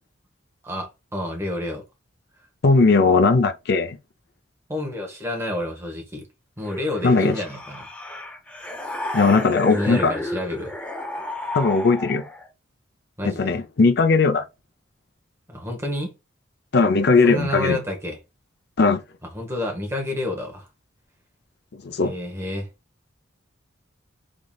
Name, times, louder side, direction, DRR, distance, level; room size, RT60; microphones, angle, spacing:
voice 1, 0.6-1.8 4.7-6.3 6.6-7.9 9.7-10.7 13.2-13.6 15.5-16.1 17.2-18.2 19.2-20.7 22.0-22.7, left 1 dB, 15° right, 1.1 m, -29 dB
voice 2, 2.6-4.0 7.0-7.4 9.1-10.1 11.5-12.2 13.2-14.4 16.7-17.8 18.8-19.0 21.7-22.1, left 4 dB, 55° left, 0.5 m, -18 dB
sound 1, 6.6-12.5, left 1 dB, 5° left, 0.6 m, -32 dB
3.7 x 3.6 x 2.3 m
head